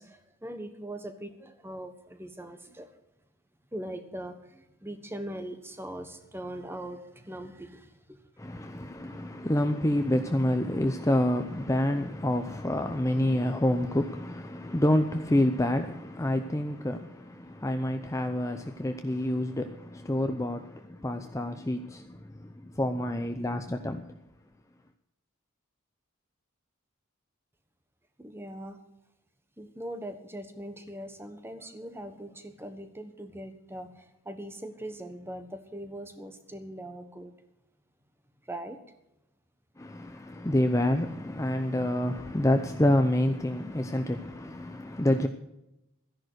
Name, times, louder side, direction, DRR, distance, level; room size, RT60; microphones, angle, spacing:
voice 1, 0.0-2.9 3.7-8.2 28.2-28.8 29.6-37.3 38.5-38.8, right 1 dB, 10° right, 1.3 m, -41 dB
voice 2, 8.4-24.2 39.8-45.3, left 1 dB, 15° left, 0.6 m, -28 dB
13.5 x 11.0 x 6.3 m
head